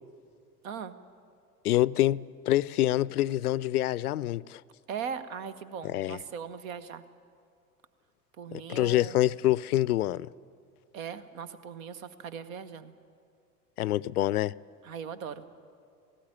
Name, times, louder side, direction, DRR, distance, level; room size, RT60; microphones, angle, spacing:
voice 1, 0.6-0.9 4.9-7.0 8.4-9.2 10.9-12.9 14.8-15.5, right 7 dB, 55° right, 1.2 m, -39 dB
voice 2, 1.6-4.6 5.8-6.2 8.5-10.3 13.8-14.5, left 14 dB, 70° left, 0.5 m, -26 dB
17.5 x 17.5 x 8.9 m
figure-of-eight pair, 80°, 47 cm